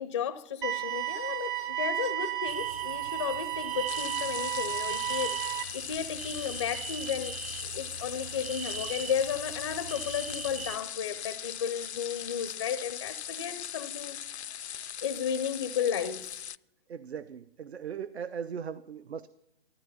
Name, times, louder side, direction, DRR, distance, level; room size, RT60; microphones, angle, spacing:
voice 1, 0.0-7.3 7.7-14.2 14.7-16.4, left 8 dB, 25° left, 0.4 m, -34 dB
sound 1, 0.6-5.6, right 12 dB, 55° right, 1.1 m, -33 dB
sound 2, 2.5-10.8, right 7 dB, 35° right, 0.5 m, -41 dB
sound 3, 3.9-16.6, left 9 dB, 90° left, 0.5 m, -39 dB
voice 2, 16.9-19.3, right 7 dB, 80° right, 0.7 m, -38 dB
14.5 x 13.0 x 5.5 m
hypercardioid pair, 145°, 32 cm